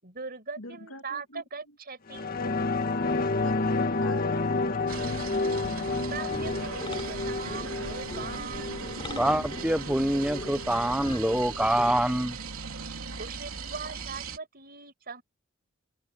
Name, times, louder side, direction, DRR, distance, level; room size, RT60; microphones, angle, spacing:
voice 1, 0.0-2.3 6.1-8.9 13.2-15.2, right 5 dB, 45° right, 6.3 m, -40 dB
voice 2, 0.6-1.4 3.1-5.7, left 2 dB, 75° left, 2.9 m, -44 dB
sound 1, 2.1-11.1 11.5-11.6, left 3 dB, 45° left, 1.8 m, -30 dB
sound 2, 4.9-14.4, right 5 dB, 85° right, 3.2 m, -39 dB
sound 3, 6.3-12.0, left 1 dB, 25° left, 4.1 m, -42 dB
voice 3, 9.2-12.4, right 1 dB, 5° right, 1.1 m, -25 dB
open air
head